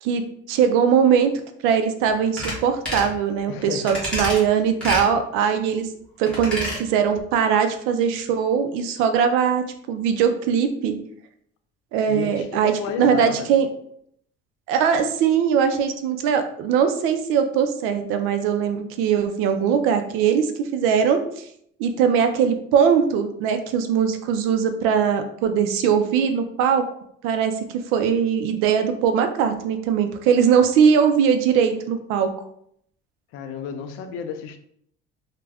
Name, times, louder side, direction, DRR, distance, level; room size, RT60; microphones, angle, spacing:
voice 1, 0.5-1.3 1.6-5.9 6.2-11.0 11.9-13.7 14.7-21.4 21.8-26.8 27.2-27.5 27.9-32.3, right 7 dB, 90° right, 7 dB, 0.5 m, -20 dB
sound 1, 2.4-2.6 2.9-3.1 3.9-4.4 4.8-5.1 6.3-6.8 7.1-7.2, equal, 5° left, 0.9 m, -28 dB
voice 2, 3.5-4.0 12.1-13.5 33.3-34.6, left 7 dB, 80° left, 7 dB, 0.4 m, -32 dB
2.4 x 2.2 x 3.3 m, 0.68 s
cardioid pair, 180°, 21 cm